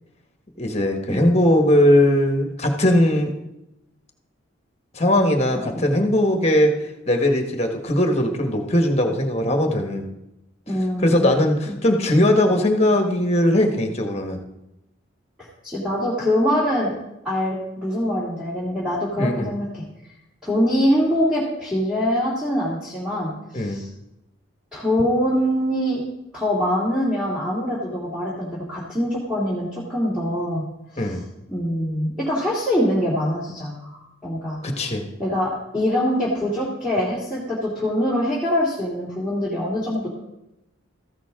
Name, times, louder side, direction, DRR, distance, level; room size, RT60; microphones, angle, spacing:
voice 1, 0.6-3.3 4.9-10.1 11.0-14.4 19.2-19.5 23.5-23.8 31.0-31.2 34.6-35.0, left 1 dB, 30° left, 4 dB, 1.4 m, -19 dB
voice 2, 5.5-5.9 10.7-11.4 11.7-11.8 15.4-16.9 17.2-19.8 20.4-23.9 24.7-26.0 26.3-30.6 30.9-31.1 31.5-34.6 35.2-40.1, equal, 5° right, -8 dB, 2.4 m, -24 dB
14.5 x 11.0 x 3.7 m, 0.90 s
head